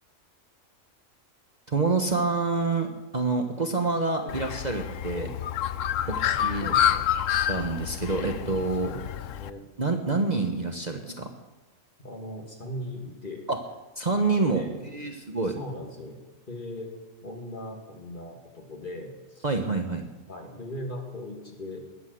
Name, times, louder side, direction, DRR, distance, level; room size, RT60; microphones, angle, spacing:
voice 1, 1.7-5.3 6.1-6.7 7.5-8.9 9.8-11.3 13.5-13.6 14.0-14.6 14.9-15.6 19.4-20.0, right 3 dB, 35° right, 4 dB, 1.1 m, -27 dB
Bird, 4.3-9.5, left 10 dB, 75° left, 1.0 m, -28 dB
voice 2, 6.2-7.1 8.3-9.6 10.1-10.4 12.0-13.5 14.5-14.8 15.4-16.2 16.5-16.9 17.2-19.5 20.3-21.8, left 1 dB, 40° left, 1 dB, 2.6 m, -39 dB
20.0 x 8.1 x 7.8 m, 1.1 s
omnidirectional pair, 1.4 m